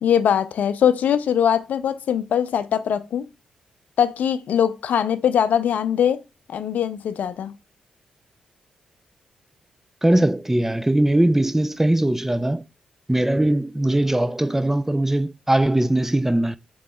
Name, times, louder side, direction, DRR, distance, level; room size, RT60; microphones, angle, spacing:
voice 1, 0.0-3.3 4.0-6.2 6.5-7.5, left 8 dB, 70° left, 0.4 m, -21 dB
voice 2, 10.0-12.6 13.1-16.6, right 1 dB, 10° right, 0.3 m, -20 dB
5.1 x 3.0 x 2.2 m
supercardioid pair, 45°, 3 cm